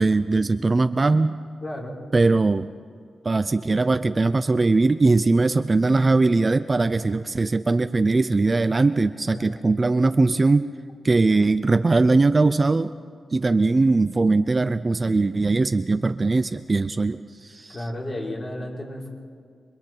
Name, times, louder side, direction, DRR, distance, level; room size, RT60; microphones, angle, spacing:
voice 1, 0.0-1.4 2.1-2.7 3.2-10.7 11.0-12.9 13.3-17.8, right 3 dB, 25° right, 11 dB, 0.5 m, -20 dB
voice 2, 1.6-1.9 9.3-9.6 17.7-19.1, left 1 dB, 30° left, -2 dB, 4.6 m, -33 dB
27.5 x 24.0 x 4.5 m, 2.1 s
wide cardioid pair, 120°, 0 cm